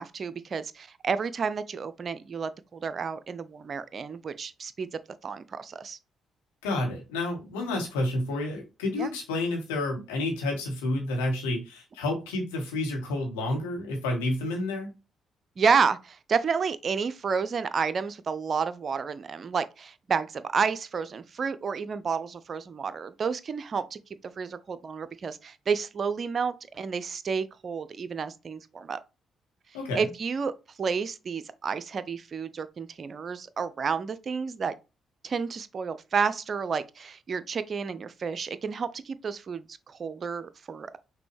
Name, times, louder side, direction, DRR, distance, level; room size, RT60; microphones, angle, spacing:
voice 1, 0.0-4.9 5.2-6.0 9.0-9.1 15.6-24.0 24.2-29.0 30.0-34.7 35.2-41.0, right 5 dB, 45° right, 0.5 m, -30 dB
voice 2, 6.6-14.9 29.7-30.1, left 2 dB, 75° left, 1.5 m, -30 dB
6.0 x 2.7 x 3.3 m
figure-of-eight pair, 40°, 0 cm